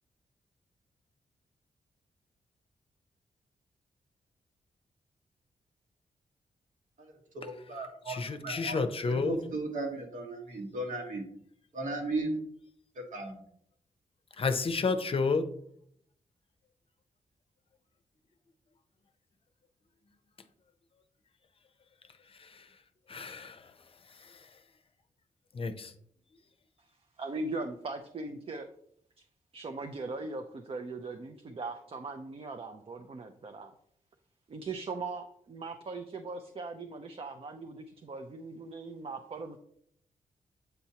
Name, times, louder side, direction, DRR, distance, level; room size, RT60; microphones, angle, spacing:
voice 1, 7.3-8.8 9.1-11.2 11.7-12.4 12.9-13.4, right 2 dB, 70° right, 1.3 m, -36 dB
voice 2, 8.1-9.4 14.4-15.5 22.3-22.7 23.1-23.7 24.1-24.5 25.5-25.9, left 4 dB, 40° left, 0.6 m, -31 dB
voice 3, 27.2-28.7 29.2-29.3 29.5-33.7 34.5-39.6, right 3 dB, 45° right, 0.5 m, -39 dB
8.0 x 4.4 x 2.8 m
cardioid pair, 95°, 14 cm